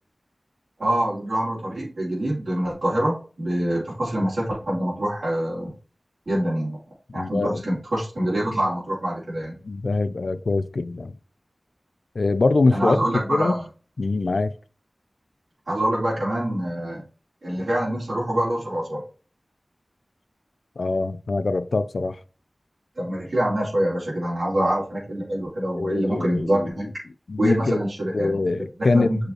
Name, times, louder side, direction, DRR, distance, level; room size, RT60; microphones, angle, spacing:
voice 1, 0.8-5.7 6.3-6.8 7.1-9.6 12.7-13.7 15.7-17.0 17.4-19.0 23.0-26.9 27.4-29.3, right 1 dB, 70° right, 4.2 m, -25 dB
voice 2, 7.1-7.6 9.6-11.2 12.1-13.6 14.0-14.5 20.8-22.2 25.7-26.9 27.3-27.8 28.1-29.2, left 3 dB, 85° left, 0.5 m, -23 dB
6.5 x 5.0 x 4.5 m
wide cardioid pair, 40°, 0 cm